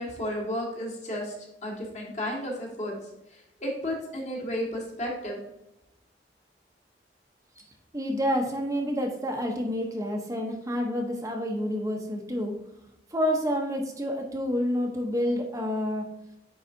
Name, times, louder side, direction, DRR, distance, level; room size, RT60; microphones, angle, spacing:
voice 1, 0.0-1.3 1.6-3.0 3.3-5.4, equal, 40° left, -2 dB, 1.8 m, -33 dB
voice 2, 7.9-12.5 13.1-16.1, equal, 20° right, 1 dB, 0.8 m, -28 dB
9.5 x 3.9 x 2.6 m, 0.88 s
head